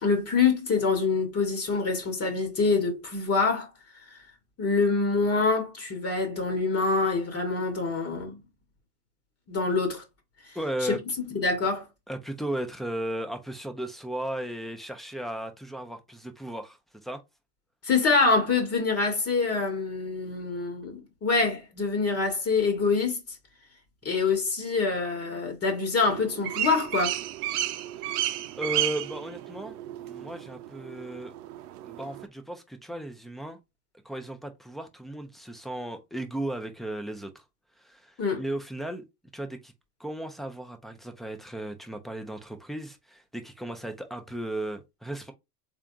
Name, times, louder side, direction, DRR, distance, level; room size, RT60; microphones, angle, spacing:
voice 1, 0.0-3.7 4.1-4.2 4.6-8.4 9.5-10.0 10.5-11.0 11.3-11.9 17.8-23.2 24.0-27.2 38.2-38.4, left 4 dB, 30° left, 1.4 m, -25 dB
voice 2, 10.5-11.0 12.1-17.2 28.0-28.2 28.6-31.3 31.8-33.6 34.0-37.4 37.8-39.0 39.3-39.7 40.0-45.3, right 1 dB, ahead, 0.6 m, -35 dB
sound 1, 26.0-32.3, right 13 dB, 70° right, 0.6 m, -33 dB
3.6 x 3.5 x 2.5 m
hypercardioid pair, 90°, 48 cm